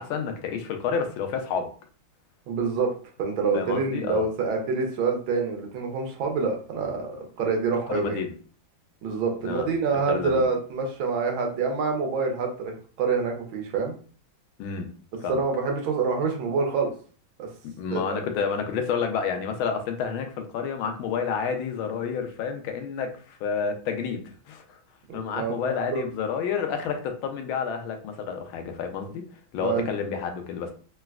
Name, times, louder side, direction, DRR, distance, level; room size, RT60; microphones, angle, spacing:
voice 1, 0.0-1.7 3.5-4.3 7.9-8.3 9.4-9.7 10.1-10.4 14.6-14.9 15.2-15.4 17.8-24.6 25.1-29.2 29.5-30.7, left 6 dB, 80° left, 5 dB, 1.4 m, -29 dB
voice 2, 2.5-2.9 3.2-8.2 9.0-13.9 15.3-16.9 17.4-17.5 17.9-18.3 25.1-25.6 25.9-26.0 29.6-29.9, right 4 dB, 75° right, 2 dB, 1.5 m, -26 dB
3.9 x 2.1 x 2.3 m, 0.42 s
omnidirectional pair, 2.2 m